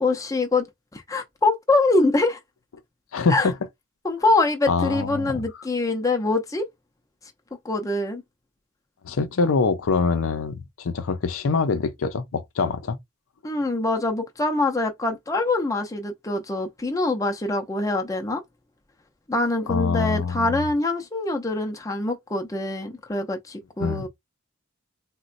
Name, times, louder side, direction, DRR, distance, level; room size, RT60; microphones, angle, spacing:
voice 1, 0.0-0.7 0.9-2.4 3.3-3.5 4.0-6.7 7.6-8.2 13.4-18.4 19.3-24.1, left 2 dB, 15° left, 0.5 m, -24 dB
voice 2, 3.1-3.5 4.7-5.3 9.0-13.0 19.7-20.6 23.8-24.1, left 4 dB, 80° left, 0.5 m, -24 dB
4.0 x 2.2 x 2.5 m
head